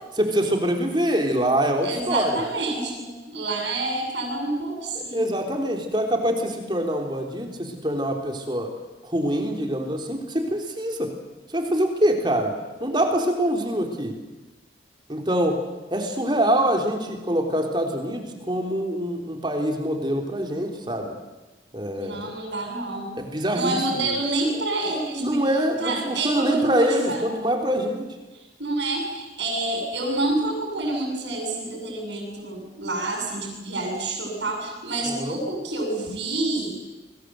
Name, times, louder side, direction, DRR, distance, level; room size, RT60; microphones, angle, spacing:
voice 1, 0.2-2.4 5.0-8.7 9.0-11.1 11.5-12.5 12.8-14.1 15.1-15.6 15.9-21.1 21.7-22.3 23.2-24.2 25.2-28.1 35.1-35.4, right 1 dB, 25° right, 3 dB, 3.8 m, -24 dB
voice 2, 1.8-5.2 21.9-23.1 23.5-25.4 25.8-27.2 28.3-36.7, right 2 dB, 75° right, 0 dB, 7.3 m, -28 dB
29.0 x 22.0 x 8.0 m, 1.2 s
head